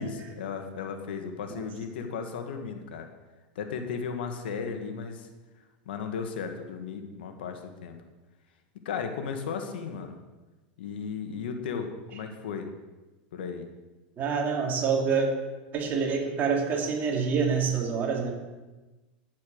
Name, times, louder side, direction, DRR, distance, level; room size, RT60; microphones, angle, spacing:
voice 1, 0.0-3.1 3.5-5.3 5.8-8.0 8.8-10.2 10.8-12.7 13.3-13.7, left 6 dB, 85° left, 5 dB, 1.7 m, -35 dB
voice 2, 14.2-15.3 15.7-18.3, right 5 dB, 35° right, 0 dB, 3.0 m, -26 dB
10.5 x 8.5 x 6.4 m, 1.2 s
supercardioid pair, 130°, 5 cm